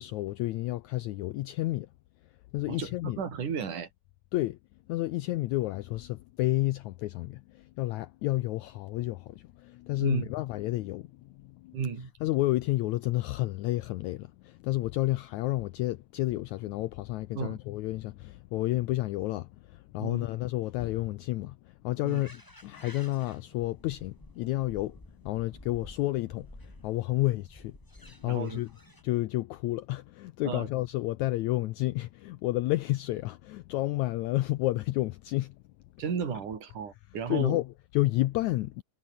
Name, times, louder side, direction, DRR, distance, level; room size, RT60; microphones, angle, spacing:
voice 1, 0.0-1.9 2.5-3.2 4.3-4.6 4.9-11.8 12.2-28.7 29.0-35.6 37.3-38.8, left 17 dB, 80° left, 1.7 m, -31 dB
voice 2, 2.7-3.9 10.0-10.3 11.7-12.1 17.4-17.6 20.0-20.3 22.0-22.2 28.3-28.6 30.4-30.7 36.0-37.6, right 6 dB, 65° right, 5.3 m, -33 dB
sound 1, 22.1-29.0, left 1 dB, 5° left, 4.0 m, -52 dB
omnidirectional pair, 3.9 m